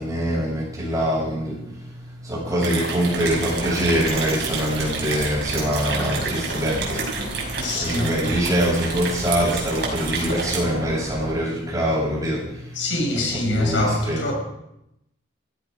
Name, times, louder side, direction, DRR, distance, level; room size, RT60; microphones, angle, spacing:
voice 1, 0.0-12.9 13.1-13.3 13.5-14.2, equal, 15° right, 7.4 m, -24 dB
sound 1, 2.6-10.6, right 4 dB, 60° right, 5.5 m, -30 dB
Bird, 3.1-11.3, right 1 dB, 35° right, 6.3 m, -34 dB
voice 2, 7.5-8.1 12.7-14.3, left 1 dB, 70° left, 5.5 m, -24 dB
16.0 x 14.5 x 5.1 m
head